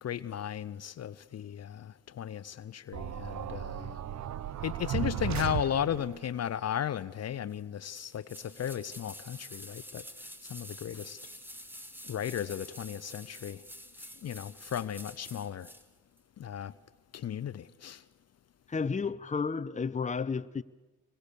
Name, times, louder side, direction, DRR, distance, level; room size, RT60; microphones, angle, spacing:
voice 1, 0.0-4.0 4.6-11.2 12.0-13.6 14.0-15.7 16.4-16.7 17.1-18.0, left 9 dB, 50° left, 0.7 m, -35 dB
sound 1, 2.9-6.3, right 11 dB, 60° right, 0.8 m, -35 dB
sound 2, 7.9-15.9 16.2-16.3, equal, 5° right, 2.1 m, -48 dB
voice 2, 18.7-20.6, left 5 dB, 25° left, 0.8 m, -32 dB
25.5 x 22.0 x 6.9 m
supercardioid pair, 65°, 32 cm